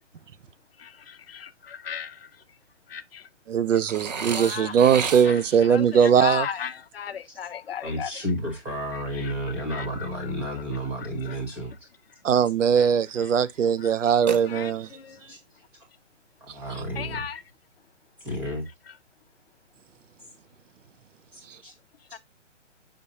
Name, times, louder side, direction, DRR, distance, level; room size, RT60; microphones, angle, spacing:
voice 1, 0.8-2.2 2.9-3.2 4.3-4.7 5.1-5.4 5.7-8.1 9.2-9.3 9.7-9.9 11.3-11.4 12.8-12.9 13.8-13.9 14.5-15.2 17.0-17.4 22.1-22.2, left 8 dB, 55° left, 0.7 m, -35 dB
voice 2, 3.5-6.5 12.2-14.9, right 7 dB, 85° right, 0.7 m, -20 dB
Burping eructation, 3.9-5.6 14.3-15.0, right 6 dB, 35° right, 0.6 m, -33 dB
voice 3, 7.8-11.7 15.3-15.4 16.4-17.3 18.2-18.6 21.3-21.7, equal, 5° right, 0.7 m, -32 dB
7.1 x 5.1 x 2.7 m
hypercardioid pair, 165°, 37 cm